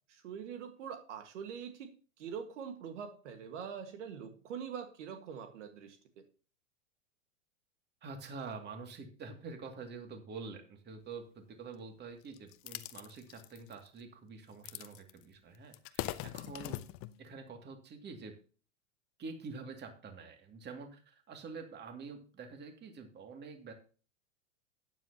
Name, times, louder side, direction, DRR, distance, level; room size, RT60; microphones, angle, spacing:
voice 1, 0.1-1.9 2.2-6.0, right 7 dB, 70° right, 7 dB, 1.8 m, -43 dB
voice 2, 8.0-16.8 17.2-18.4 19.2-23.7, right 4 dB, 25° right, 5 dB, 2.4 m, -47 dB
sound 1, 12.3-13.9 14.6-15.2 15.5-17.2, left 16 dB, 35° left, 0.8 m, -41 dB
12.5 x 9.8 x 2.9 m, 0.38 s
hypercardioid pair, 110°, 38 cm